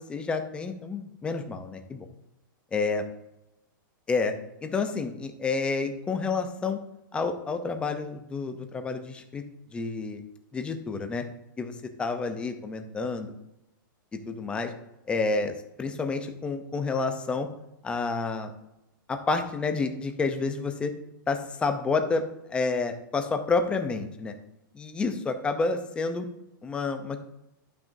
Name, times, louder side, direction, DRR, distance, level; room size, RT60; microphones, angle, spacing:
voice 1, 0.0-2.0 2.7-3.0 4.1-4.3 4.6-6.8 7.1-9.4 9.7-10.2 10.5-11.2 11.6-13.3 14.3-14.7 15.1-15.5 15.8-17.5 17.8-18.5 19.1-20.9 21.3-22.2 22.5-24.3 24.7-26.3 26.6-27.2, left 4 dB, 10° left, 7 dB, 0.6 m, -29 dB
11.5 x 5.9 x 2.7 m, 0.88 s
supercardioid pair, 165°, 11 cm